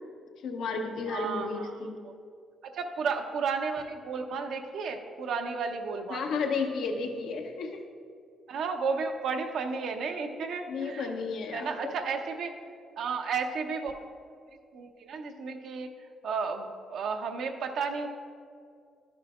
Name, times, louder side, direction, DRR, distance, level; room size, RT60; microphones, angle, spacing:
voice 1, 0.4-2.0 6.1-7.8 10.7-11.9, left 4 dB, 75° left, 4 dB, 0.8 m, -32 dB
voice 2, 1.1-2.1 2.6-6.3 8.5-11.1 11.5-12.6 13.0-13.9 14.7-15.9 16.2-18.1, right 5 dB, 70° right, 4 dB, 0.7 m, -33 dB
11.5 x 8.8 x 2.4 m, 2.3 s
cardioid pair, 90°, 0 cm